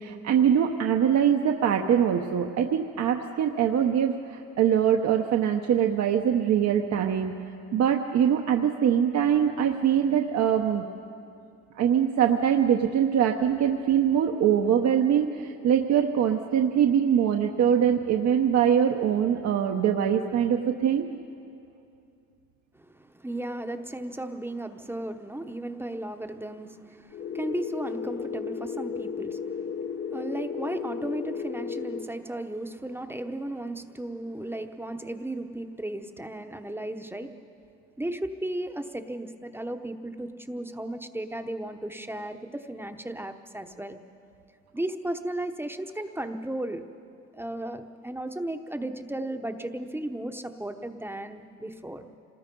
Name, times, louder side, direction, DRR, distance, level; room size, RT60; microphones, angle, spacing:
voice 1, 0.0-7.4 7.7-10.9 11.8-21.1, right 8 dB, 65° right, 3 dB, 1.0 m, -23 dB
voice 2, 22.7-37.3 38.0-44.0 44.7-46.8 47.3-52.0, right 1 dB, 10° right, 6 dB, 0.9 m, -35 dB
sound 1, 27.1-32.1, left 6 dB, 45° left, 0.8 m, -34 dB
26.5 x 19.5 x 5.4 m, 2.5 s
cardioid pair, 105°, 29 cm